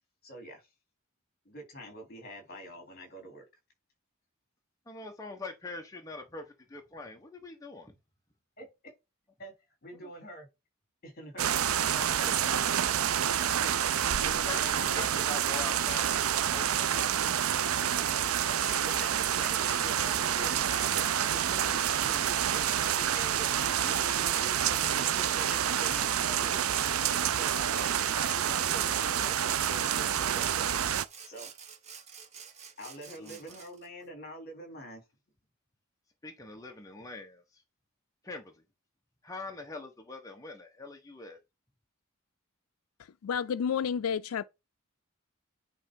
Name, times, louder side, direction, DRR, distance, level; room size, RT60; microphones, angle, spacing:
voice 1, 0.2-0.7 1.5-3.4 8.6-8.9 9.4-9.5 9.8-10.5 11.0-12.7 13.4-13.7 14.2-15.3 18.5-26.8 27.3-30.7 31.2-31.5 32.8-35.0, equal, 45° left, 3.7 m, -45 dB
voice 2, 4.9-7.9 10.0-10.1 11.9-12.4 14.2-17.1 33.2-33.4 36.2-37.6 38.2-38.5 39.2-41.4, left 3 dB, 15° left, 1.2 m, -43 dB
sound 1, 11.4-31.1, right 9 dB, 80° right, 0.5 m, -28 dB
Sawing, 25.1-25.7 26.2-33.9, right 6 dB, 35° right, 1.2 m, -49 dB
voice 3, 43.0-44.4, left 7 dB, 90° left, 0.4 m, -31 dB
9.8 x 3.4 x 5.4 m
head